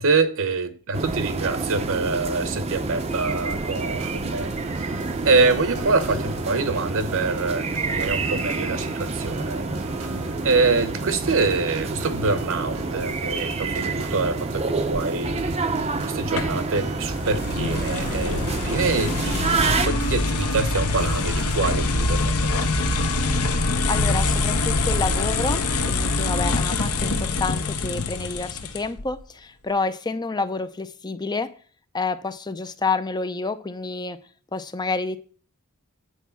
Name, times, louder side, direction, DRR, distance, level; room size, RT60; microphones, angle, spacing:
voice 1, 0.0-4.5 5.2-7.6 7.9-9.6 10.4-15.4 16.1-22.9, right 3 dB, 65° right, 11 dB, 1.0 m, -25 dB
sound 1, 0.9-19.9, right 3 dB, 30° right, 0.6 m, -28 dB
sound 2, 2.9-21.7, right 3 dB, 80° right, 1.6 m, -39 dB
sound 3, 16.4-29.1, left 2 dB, 80° left, 1.1 m, -24 dB
voice 2, 23.9-31.5 31.9-34.2 34.5-35.2, left 3 dB, 20° left, 11 dB, 0.5 m, -28 dB
8.3 x 4.6 x 7.1 m, 0.43 s
head